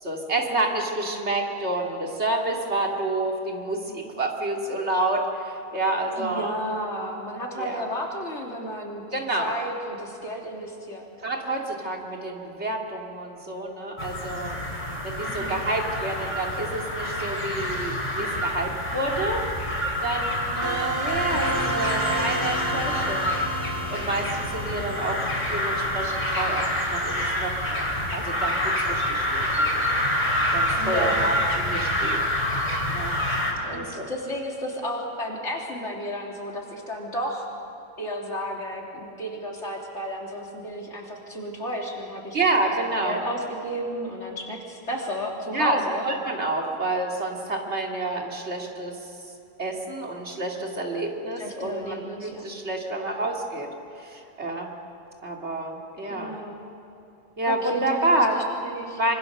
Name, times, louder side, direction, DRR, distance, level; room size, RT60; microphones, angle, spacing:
voice 1, 0.0-6.5 7.6-7.8 9.1-9.5 11.2-14.6 15.0-19.5 20.0-23.3 23.9-30.0 30.5-32.2 32.9-33.2 33.6-34.0 42.3-43.2 45.5-49.3 49.6-54.7 55.2-56.3 57.4-58.5 59.0-59.1, right 2 dB, 60° right, 0 dB, 2.8 m, -29 dB
voice 2, 6.2-11.1 15.2-15.6 30.8-31.4 33.6-37.5 38.0-42.4 43.0-46.1 51.4-52.5 56.1-56.6 57.5-59.0, equal, 65° left, -1 dB, 3.7 m, -33 dB
sound 1, 14.0-33.5, left 1 dB, 35° left, 4.3 m, -27 dB
sound 2, 20.6-27.3, right 2 dB, 15° right, 3.5 m, -33 dB
25.0 x 25.0 x 6.7 m, 2.8 s
omnidirectional pair, 1.3 m